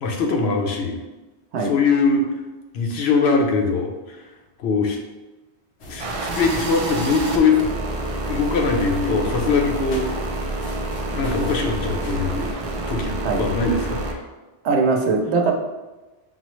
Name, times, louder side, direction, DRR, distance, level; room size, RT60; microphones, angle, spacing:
voice 1, 0.0-1.0 1.6-2.2 2.7-4.3 4.6-5.0 5.9-7.6 8.3-10.1 11.0-12.5 12.9-14.2, left 4 dB, 70° left, 2 dB, 0.8 m, -21 dB
sound 1, 5.8-13.5, left 1 dB, 90° left, 1.1 m, -37 dB
sound 2, 6.0-14.1, right 2 dB, 60° right, 0.3 m, -28 dB
voice 2, 14.6-15.5, right 4 dB, 80° right, 3 dB, 0.9 m, -20 dB
5.7 x 2.0 x 3.0 m, 1.1 s
omnidirectional pair, 1.1 m